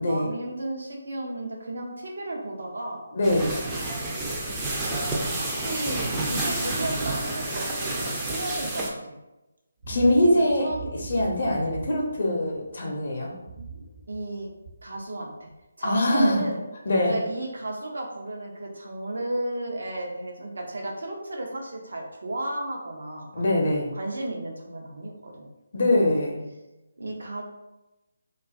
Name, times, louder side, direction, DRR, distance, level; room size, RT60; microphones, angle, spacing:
voice 1, 0.1-3.0 4.7-5.1 5.4-9.2 10.3-10.9 11.5-11.8 14.1-14.5 14.8-15.5 15.8-16.6 17.1-23.4 24.0-25.5 25.9-26.2 27.0-27.4, right 1 dB, 70° right, 1 dB, 0.6 m, -34 dB
voice 2, 3.1-3.5 9.9-13.3 15.8-16.4 16.9-17.1 23.3-23.9 25.7-26.5, left 1 dB, 55° left, -1 dB, 0.6 m, -23 dB
sound 1, 3.2-8.9, right 2 dB, 10° right, 0.4 m, -29 dB
sound 2, 9.8-12.8 13.3-15.0 15.5-15.6, right 4 dB, 45° right, 0.9 m, -41 dB
2.5 x 2.3 x 2.4 m, 0.99 s
figure-of-eight pair, 150°, 0 cm